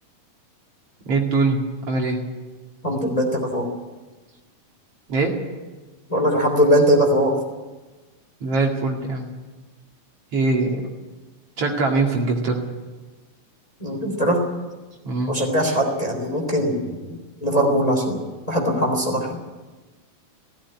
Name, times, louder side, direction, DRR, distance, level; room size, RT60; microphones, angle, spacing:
voice 1, 1.0-1.6 1.9-2.2 5.1-5.3 8.4-9.3 10.3-10.8 11.6-12.6 15.0-15.3, right 3 dB, 50° right, 0 dB, 3.1 m, -22 dB
voice 2, 2.8-3.7 6.1-7.4 13.8-14.4 15.3-19.4, equal, 10° left, 2 dB, 2.8 m, -21 dB
17.0 x 15.5 x 9.7 m, 1.2 s
omnidirectional pair, 3.5 m